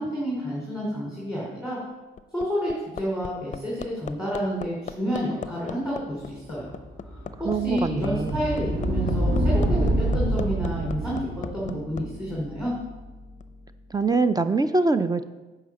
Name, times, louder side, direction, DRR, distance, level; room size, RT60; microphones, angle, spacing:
voice 1, 0.0-1.8 2.3-6.7 7.4-11.2 11.5-12.7, equal, 5° right, -6 dB, 3.2 m, -29 dB
Hammer, 1.9-12.1 13.4-13.5, left 7 dB, 40° left, 0.5 m, -37 dB
sound 1, 6.7-13.6, right 1 dB, 85° right, 3.2 m, -27 dB
voice 2, 7.4-8.4 13.9-15.3, right 3 dB, 20° right, 11 dB, 0.5 m, -24 dB
9.1 x 5.0 x 7.1 m, 1.2 s
cardioid pair, 90°, 20 cm